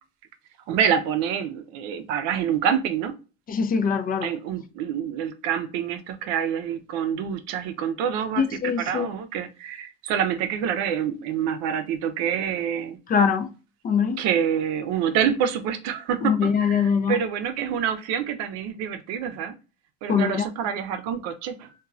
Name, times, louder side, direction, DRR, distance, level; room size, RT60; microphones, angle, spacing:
voice 1, 0.7-3.1 4.2-13.0 14.2-19.5 20.0-21.7, right 8 dB, 70° right, 0.5 m, -27 dB
voice 2, 3.5-4.3 8.4-9.1 13.1-13.5 13.8-14.2 16.2-17.2 20.1-20.5, left 6 dB, 30° left, 0.4 m, -22 dB
3.0 x 2.3 x 2.4 m
supercardioid pair, 95°, 29 cm